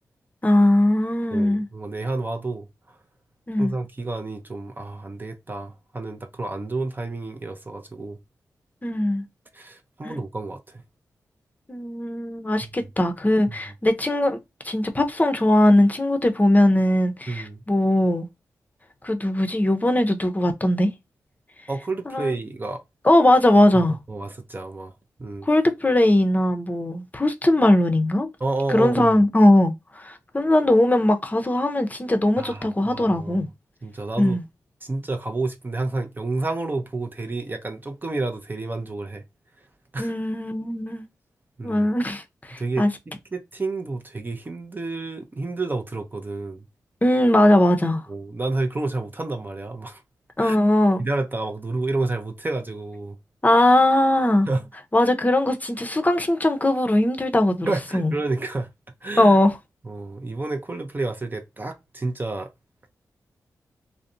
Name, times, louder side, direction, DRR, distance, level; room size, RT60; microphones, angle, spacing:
voice 1, 0.4-1.7 3.5-3.7 8.8-9.2 10.0-10.2 11.7-14.4 14.6-18.3 19.0-20.9 22.1-22.3 23.0-24.0 25.4-28.3 28.7-33.5 34.2-34.4 40.0-41.0 41.6-42.2 42.5-42.9 47.0-48.0 50.4-51.1 53.4-54.5 54.9-58.1 59.2-59.6, left 1 dB, 25° left, 0.6 m, -20 dB
voice 2, 1.3-3.0 3.6-8.2 9.5-10.8 12.6-12.7 13.5-13.6 17.3-17.6 21.7-22.8 23.7-24.9 25.2-25.5 28.4-29.2 32.4-33.4 33.8-34.4 34.8-39.2 39.9-40.1 41.6-41.9 42.6-42.9 43.3-46.6 48.1-50.0 50.4-50.6 51.0-53.2 54.5-54.7 57.7-58.7 59.0-59.4 59.8-62.5, right 2 dB, 30° right, 0.5 m, -30 dB
2.5 x 2.1 x 2.5 m
supercardioid pair, 40°, 7 cm